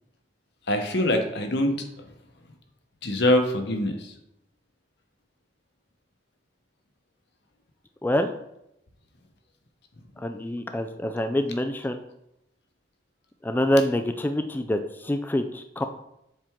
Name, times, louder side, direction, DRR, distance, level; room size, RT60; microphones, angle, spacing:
voice 1, 0.7-2.1 3.0-4.1, left 1 dB, 65° left, 5 dB, 1.0 m, -24 dB
voice 2, 10.2-12.0 13.4-15.8, left 1 dB, 10° left, 6 dB, 0.3 m, -26 dB
7.5 x 4.3 x 3.6 m, 0.83 s
head